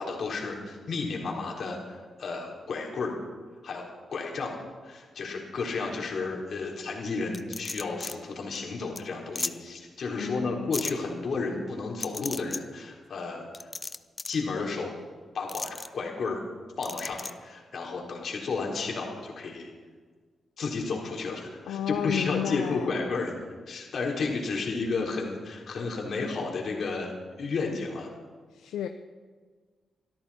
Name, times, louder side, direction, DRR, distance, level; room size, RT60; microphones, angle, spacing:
voice 1, 0.0-3.2 3.6-4.6 4.8-13.7 14.3-14.9 15.3-16.4 16.8-19.7 20.6-23.3 23.7-27.1 27.4-28.1, left 4 dB, 65° left, 0 dB, 3.9 m, -32 dB
sound 1, 7.3-8.1 8.5-8.6 8.9-9.0 9.3-9.5 10.7-10.9 12.0-12.6 13.5-14.4 15.5-15.9 16.8-17.3, left 3 dB, 35° left, 0.8 m, -34 dB
voice 2, 10.1-10.7 21.7-22.9 28.5-28.9, left 9 dB, 85° left, 7 dB, 0.6 m, -32 dB
24.0 x 13.0 x 4.3 m, 1.5 s
supercardioid pair, 50°, 0 cm